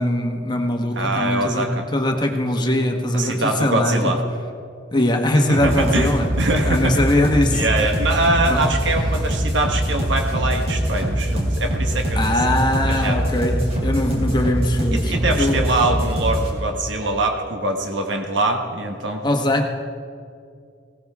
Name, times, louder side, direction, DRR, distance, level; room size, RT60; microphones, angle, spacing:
voice 1, 0.0-4.1 4.9-6.3 6.7-7.6 8.5-8.7 12.1-15.7 19.2-19.7, left 1 dB, 25° left, 3 dB, 1.2 m, -21 dB
voice 2, 0.9-1.8 3.1-4.2 5.5-7.0 7.5-12.3 12.8-13.2 14.9-19.2, right 2 dB, 70° right, 4 dB, 1.3 m, -23 dB
sound 1, 5.5-16.5, right 1 dB, 35° right, 3.1 m, -23 dB
18.5 x 17.5 x 3.6 m, 2.3 s
head